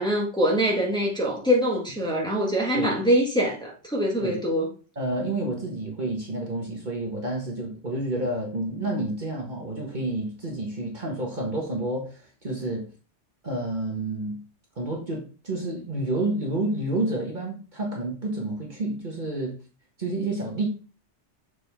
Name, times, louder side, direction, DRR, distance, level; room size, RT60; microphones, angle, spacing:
voice 1, 0.0-4.7, equal, 5° left, 1.7 m, -24 dB
voice 2, 4.9-12.9 13.4-14.4 14.8-19.6 20.0-20.7, right 2 dB, 40° right, 1.5 m, -29 dB
6.8 x 5.0 x 3.4 m
omnidirectional pair, 1.2 m